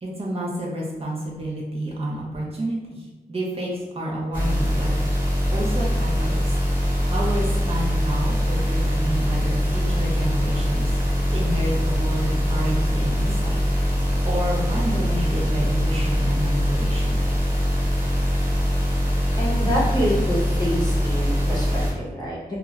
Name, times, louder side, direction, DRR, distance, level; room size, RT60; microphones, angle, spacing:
voice 1, 0.0-4.9 5.5-6.5 7.1-11.0 11.3-13.5 14.2-17.2, right 1 dB, 40° right, -4 dB, 0.6 m, -29 dB
sound 1, 4.3-21.9, equal, 10° right, 1.1 m, -22 dB
voice 2, 19.4-22.4, equal, 25° left, -5 dB, 0.8 m, -26 dB
2.4 x 2.3 x 3.1 m, 1.0 s
wide cardioid pair, 110°, 15 cm